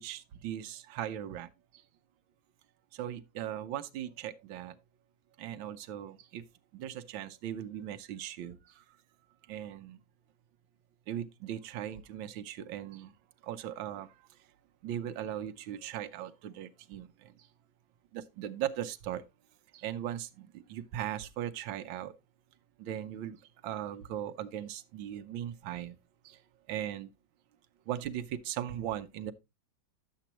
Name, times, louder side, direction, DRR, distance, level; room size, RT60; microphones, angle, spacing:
voice 1, 0.0-1.5 2.9-4.8 5.4-6.4 6.7-8.8 9.5-10.0 11.1-13.1 13.4-14.2 14.8-17.3 18.1-19.2 19.7-22.1 22.8-23.4 23.6-25.9 26.2-26.4 26.7-27.1 27.9-29.3, right 11 dB, 90° right, 1.5 m, -38 dB
10.5 x 7.6 x 2.9 m
omnidirectional pair, 2.1 m